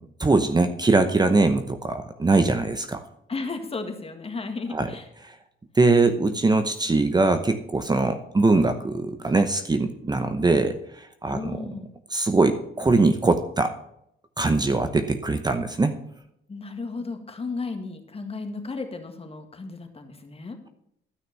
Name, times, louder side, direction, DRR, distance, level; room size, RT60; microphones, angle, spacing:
voice 1, 0.2-3.0 4.7-4.9 5.2-5.3 5.7-11.6 12.1-13.7 14.4-16.0, right 3 dB, 20° right, 8 dB, 0.9 m, -22 dB
voice 2, 3.3-5.1 11.3-11.9 16.5-20.7, left 3 dB, 30° left, 5 dB, 1.9 m, -34 dB
13.0 x 6.0 x 6.7 m, 0.75 s
cardioid pair, 90°, 20 cm